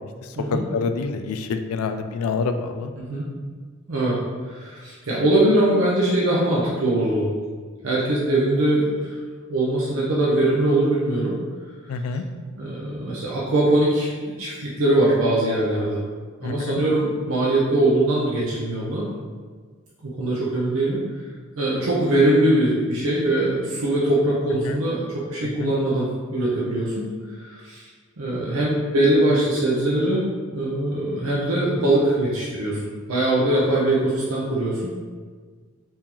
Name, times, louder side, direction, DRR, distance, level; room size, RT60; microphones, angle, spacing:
voice 1, 0.7-2.9 11.9-12.2 16.4-16.8 24.7-24.8 25.6-25.7, left 4 dB, 85° left, 9 dB, 0.3 m, -27 dB
voice 2, 4.5-7.3 7.8-9.2 9.5-11.4 12.6-16.0 16.4-19.1 20.0-21.0 21.6-27.0 27.4-27.9 28.2-30.3 30.5-34.9, right 1 dB, 75° right, -6 dB, 0.6 m, -22 dB
3.7 x 2.7 x 2.9 m, 1.5 s
head